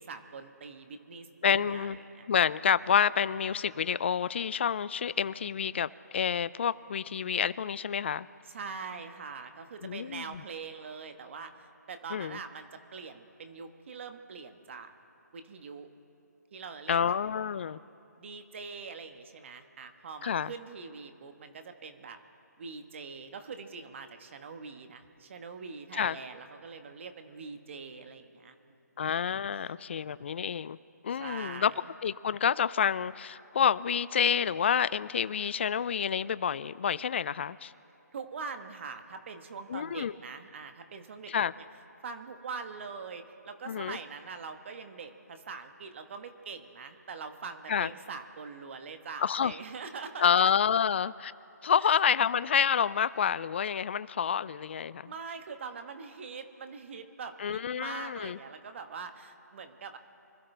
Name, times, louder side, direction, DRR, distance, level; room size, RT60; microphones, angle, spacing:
voice 1, 0.0-2.3 8.4-14.9 15.3-15.9 16.5-17.1 18.2-22.2 22.6-28.8 29.5-29.8 31.1-31.9 38.1-41.6 42.0-50.3 51.8-52.0 55.0-60.0, right 5 dB, 45° right, 7 dB, 1.2 m, -43 dB
voice 2, 1.4-2.0 2.3-8.3 9.8-10.2 12.1-12.4 16.9-17.8 20.2-20.5 25.9-26.2 29.0-30.8 31.0-31.7 32.0-37.7 39.7-40.1 41.3-41.5 43.7-44.0 47.7-47.9 49.2-49.5 50.2-51.3 51.6-55.1 57.4-58.4, left 8 dB, 40° left, 18 dB, 0.3 m, -28 dB
25.5 x 13.0 x 3.4 m, 2.7 s
figure-of-eight pair, 155°, 9 cm